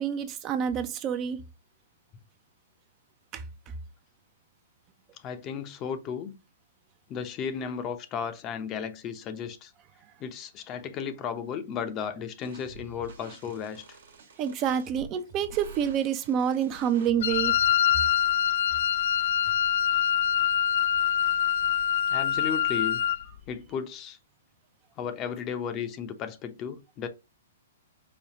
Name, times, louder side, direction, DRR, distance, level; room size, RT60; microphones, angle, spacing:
voice 1, 0.0-1.4 3.3-3.4 14.4-17.5, right 8 dB, 30° right, 0.5 m, -28 dB
voice 2, 5.2-6.3 7.1-9.7 10.2-14.0 22.1-23.0 23.5-24.2 25.0-27.1, left 7 dB, 30° left, 0.7 m, -34 dB
sound 1, 12.4-17.7, right 5 dB, 70° right, 1.2 m, -47 dB
Wind instrument woodwind instrument, 17.2-23.2, left 10 dB, 60° left, 0.3 m, -25 dB
5.0 x 2.3 x 2.9 m
hypercardioid pair, 120°, 0 cm